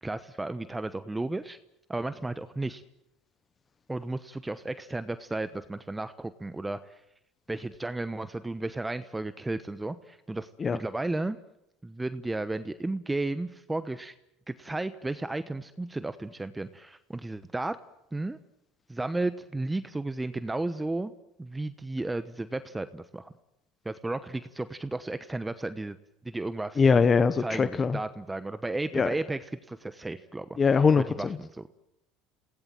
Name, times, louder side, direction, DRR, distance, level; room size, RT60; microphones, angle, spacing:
voice 1, 0.0-1.6 1.9-2.8 3.9-7.0 7.5-11.4 11.8-14.1 14.5-17.8 18.1-18.4 18.9-21.1 21.4-23.3 23.8-26.0 26.2-26.8 27.4-29.4 29.7-30.5 31.0-31.7, right 2 dB, 10° right, 12 dB, 1.0 m, -33 dB
voice 2, 26.8-28.0 28.9-29.1 30.6-31.4, left 5 dB, 30° left, 12 dB, 1.0 m, -22 dB
28.0 x 17.5 x 7.7 m, 0.83 s
supercardioid pair, 95°, 0 cm